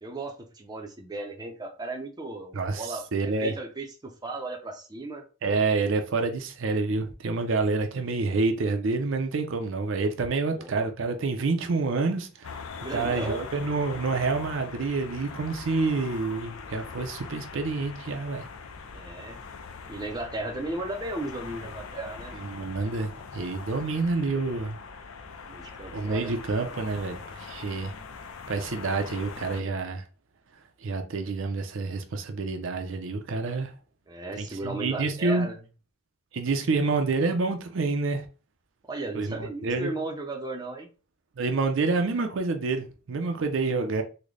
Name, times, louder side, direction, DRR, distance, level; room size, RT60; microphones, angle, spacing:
voice 1, 0.0-5.2 10.5-10.7 12.8-13.4 18.9-19.4 19.9-22.3 25.5-26.3 34.1-35.6 38.9-40.9, right 2 dB, 20° right, 0.5 m, -36 dB
voice 2, 2.5-3.5 5.4-12.7 12.9-18.4 22.3-24.8 25.9-27.9 28.5-30.0 30.8-33.7 34.4-35.5 36.3-38.3 39.1-39.9 41.4-44.0, right 3 dB, 65° right, 0.5 m, -28 dB
sound 1, 12.4-29.6, left 5 dB, 90° left, 0.5 m, -42 dB
3.8 x 2.1 x 3.2 m
head